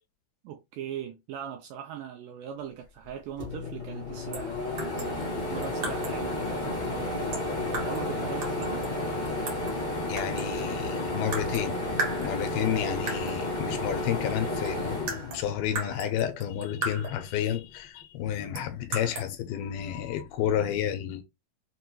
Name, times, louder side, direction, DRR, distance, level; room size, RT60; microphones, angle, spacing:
voice 1, 0.4-7.5 7.8-8.9, right 9 dB, 85° right, 1.9 m, -40 dB
sound 1, 3.0-3.1 3.4-16.0 16.4-17.5, left 2 dB, 50° left, 0.5 m, -32 dB
sound 2, 4.3-4.5 4.8-6.3 7.3-8.1 8.4-9.8 10.2-10.7 11.3-11.7 12.0-12.7 13.1-13.4 14.3-14.4 14.6-17.3 18.5-19.3, right 3 dB, 65° right, 1.3 m, -37 dB
voice 2, 10.0-11.8 12.2-21.2, left 10 dB, 85° left, 2.5 m, -31 dB
6.4 x 2.2 x 3.0 m
omnidirectional pair, 4.3 m